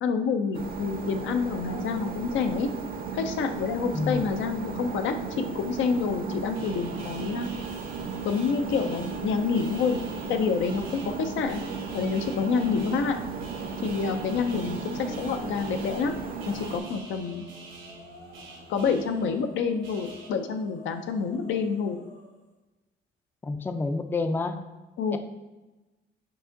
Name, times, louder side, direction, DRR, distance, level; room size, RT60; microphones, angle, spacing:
voice 1, 0.0-2.7 3.1-7.5 8.2-10.0 10.3-11.7 11.9-13.2 13.8-16.2 16.4-17.4 18.7-22.0 25.0-25.2, left 5 dB, 80° left, 6 dB, 0.5 m, -28 dB
sound 1, 0.5-16.8, right 5 dB, 50° right, 0.6 m, -35 dB
sound 2, 6.5-20.3, right 3 dB, 75° right, 1.0 m, -46 dB
sound 3, 15.3-22.5, left 3 dB, 60° left, 1.5 m, -52 dB
voice 2, 23.4-24.6 25.1-25.2, left 3 dB, 10° left, 7 dB, 0.3 m, -29 dB
4.7 x 2.6 x 3.8 m, 1.1 s
cardioid pair, 90°, 20 cm